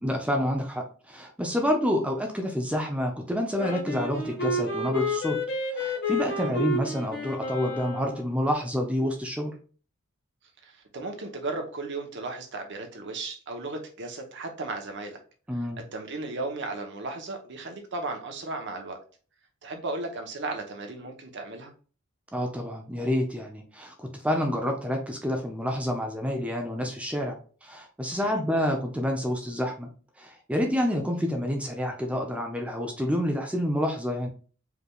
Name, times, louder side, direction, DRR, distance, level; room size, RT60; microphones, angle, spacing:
voice 1, 0.0-5.4 5.7-9.5 15.5-15.8 22.3-29.9 30.2-34.3, equal, 5° right, 2 dB, 0.6 m, -28 dB
Wind instrument woodwind instrument, 3.6-8.3, left 2 dB, 55° left, 1.3 m, -30 dB
voice 2, 10.6-15.2 15.5-15.6 15.9-19.0 19.6-21.7 28.2-28.4, right 3 dB, 60° right, 4 dB, 0.9 m, -35 dB
4.9 x 3.3 x 2.3 m, 0.39 s
head